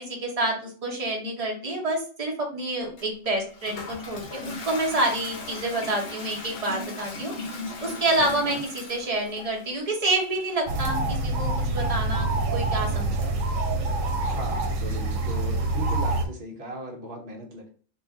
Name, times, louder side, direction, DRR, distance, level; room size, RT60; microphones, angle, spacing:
voice 1, 0.0-7.3 7.8-13.3, right 2 dB, 30° right, 0 dB, 0.9 m, -28 dB
Toilet flush, 3.0-15.8, left 3 dB, 55° left, 0.9 m, -40 dB
voice 2, 8.2-8.6 14.2-17.7, right 1 dB, 55° right, 2 dB, 1.0 m, -37 dB
sound 1, 10.7-16.3, right 2 dB, 90° right, 1.0 m, -26 dB
3.0 x 2.4 x 3.6 m, 0.42 s
omnidirectional pair, 1.3 m